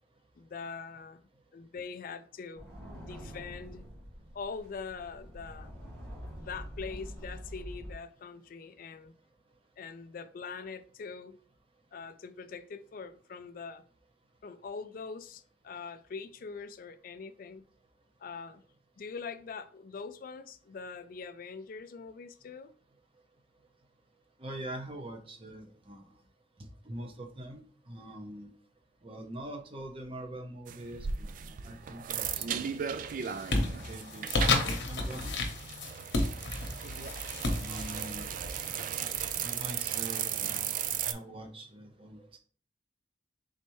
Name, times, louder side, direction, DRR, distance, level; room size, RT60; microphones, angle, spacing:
voice 1, 0.4-1.2 1.5-2.7 3.0-3.9 4.3-5.7 6.4-9.1 9.8-11.4 11.9-13.8 14.4-17.6 18.2-18.6 19.0-22.7, left 5 dB, 50° left, 0.4 m, -43 dB
sound 1, 2.5-7.9, equal, 85° right, 1.7 m, -45 dB
voice 2, 24.4-26.1 26.8-28.5 29.0-32.7 33.5-35.5 37.6-38.3 39.0-40.7 41.0-42.4, right 1 dB, 30° right, 0.7 m, -44 dB
sound 2, 30.7-41.1, right 8 dB, 50° right, 0.3 m, -36 dB
sound 3, 32.2-32.6 33.0-39.6, left 2 dB, 75° left, 0.9 m, -33 dB
4.1 x 3.2 x 3.1 m
head